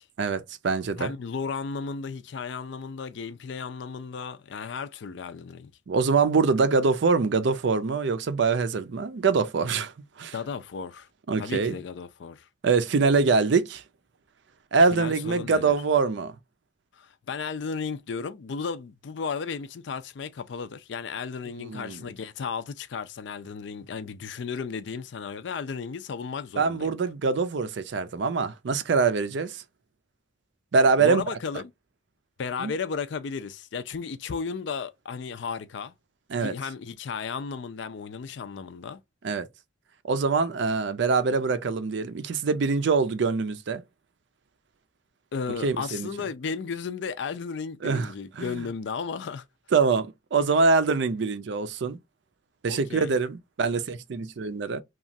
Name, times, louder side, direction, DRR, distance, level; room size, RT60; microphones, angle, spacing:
voice 1, 0.2-1.1 5.9-9.9 10.2-10.3 11.3-11.8 12.6-13.8 14.7-16.3 21.6-22.0 26.6-29.6 30.7-31.2 32.6-32.7 36.3-36.5 39.2-39.5 40.1-43.8 45.6-46.1 47.8-48.1 48.4-48.5 49.7-52.0 52.6-54.8, right 4 dB, 60° right, 0.4 m, -24 dB
voice 2, 1.0-5.7 10.3-11.1 11.4-12.5 14.9-15.8 16.9-26.9 31.0-31.7 32.4-35.9 36.4-39.0 45.3-49.5 52.7-53.1, left 5 dB, 65° left, 0.4 m, -34 dB
2.9 x 2.4 x 2.6 m
head